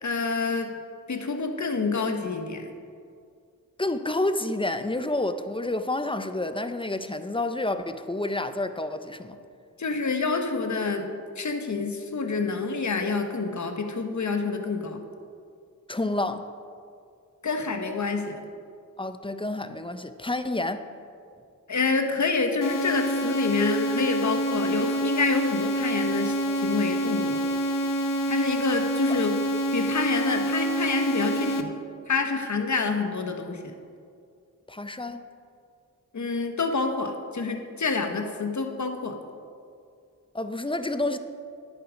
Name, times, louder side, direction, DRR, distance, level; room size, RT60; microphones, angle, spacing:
voice 1, 0.0-0.7 1.1-2.7 9.8-11.1 11.4-15.0 17.4-18.4 21.7-27.4 28.3-29.4 29.7-31.7 32.1-33.7 36.1-39.1, left 4 dB, 60° left, 5 dB, 1.2 m, -27 dB
voice 2, 3.8-9.4 15.9-16.5 19.0-20.9 29.1-29.2 34.7-35.3 40.3-41.2, left 2 dB, 15° left, 10 dB, 0.6 m, -29 dB
sound 1, 22.6-31.6, right 1 dB, 80° left, 0.8 m, -27 dB
10.0 x 8.5 x 5.0 m, 2.3 s
cardioid pair, 50°, 32 cm